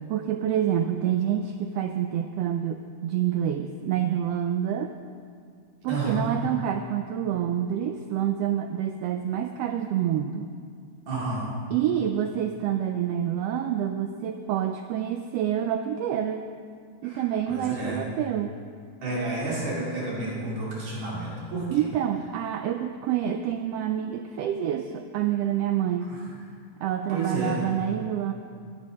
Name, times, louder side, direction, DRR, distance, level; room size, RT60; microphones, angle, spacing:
voice 1, 0.1-4.9 5.8-10.5 11.7-16.4 17.0-18.5 21.7-26.1 26.8-28.3, right 10 dB, 85° right, 7 dB, 1.4 m, -27 dB
voice 2, 5.9-6.3 11.1-11.5 17.0-18.0 19.0-21.8 26.1-26.2 27.1-27.6, right 2 dB, 70° right, -5 dB, 3.8 m, -31 dB
14.0 x 8.7 x 5.2 m, 2.2 s
omnidirectional pair, 3.3 m